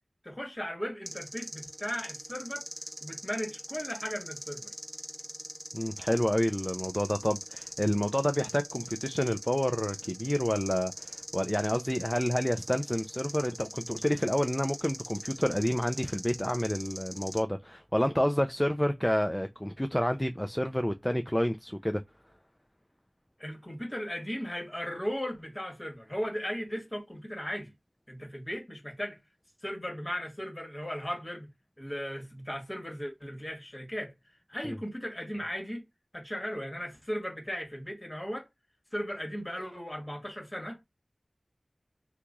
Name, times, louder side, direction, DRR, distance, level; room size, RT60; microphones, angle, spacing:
voice 1, 0.2-2.7 3.0-4.7 23.4-27.7 28.1-29.2 29.6-31.5 31.8-34.1 34.5-35.8 36.1-38.5 38.9-40.8, equal, 30° left, 1.5 m, -36 dB
sound 1, 1.1-17.4, right 1 dB, 30° right, 1.3 m, -42 dB
voice 2, 5.7-22.0 34.6-34.8, equal, 10° left, 0.3 m, -29 dB
2.9 x 2.3 x 3.6 m
wide cardioid pair, 50°, 0 cm